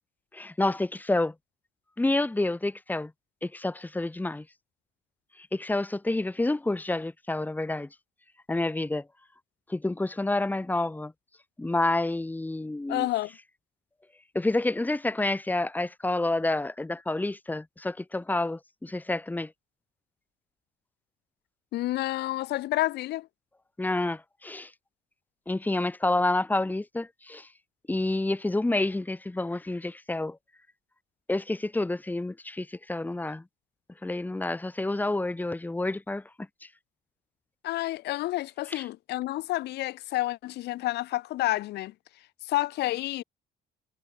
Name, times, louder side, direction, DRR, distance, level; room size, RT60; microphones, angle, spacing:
voice 1, 0.3-1.3 2.0-3.1 3.4-4.4 5.4-7.9 8.5-9.1 9.7-11.1 11.6-13.1 14.3-19.5 23.8-24.7 25.5-27.5 27.9-30.4 31.3-33.4 34.0-36.2 38.7-38.8, left 2 dB, 10° left, 2.4 m, -29 dB
voice 2, 12.9-13.3 21.7-23.3 37.6-41.9 42.5-43.2, left 16 dB, 80° left, 3.5 m, -29 dB
cardioid pair, 110°, 17 cm